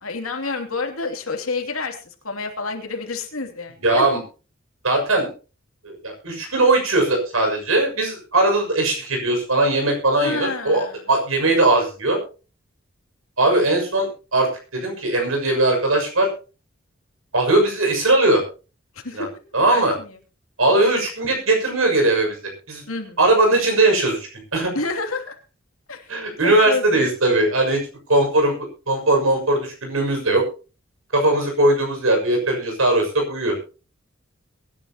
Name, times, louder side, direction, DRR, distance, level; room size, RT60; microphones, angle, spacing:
voice 1, 0.0-2.0 2.2-4.1 10.2-11.0 19.0-19.3 19.7-20.2 22.9-23.2 24.7-25.4 25.9-26.1 26.4-27.1, left 3 dB, 90° left, 4 dB, 2.9 m, -29 dB
voice 2, 3.8-4.2 4.8-5.3 5.8-12.2 13.4-16.3 17.3-18.4 19.1-19.3 19.5-19.9 20.6-22.3 22.7-22.8 23.2-24.7 26.1-27.8 28.1-30.5 31.1-33.6, right 2 dB, 85° right, 3 dB, 6.6 m, -19 dB
22.5 x 11.0 x 3.0 m, 0.34 s
head